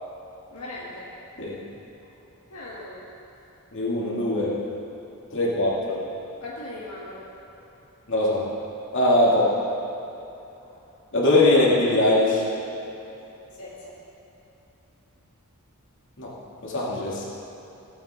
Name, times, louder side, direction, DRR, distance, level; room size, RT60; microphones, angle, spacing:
voice 1, 0.5-1.2 2.5-3.1 5.3-5.4 6.4-7.7 9.3-9.4 10.6-10.8 13.5-13.9, left 1 dB, 80° left, -7 dB, 1.6 m, -40 dB
voice 2, 3.7-4.5 5.3-6.0 8.1-8.4 8.9-9.4 11.1-12.4 16.2-16.3 16.6-17.2, left 1 dB, 55° left, -6 dB, 2.6 m, -21 dB
17.0 x 9.1 x 3.8 m, 3.0 s
head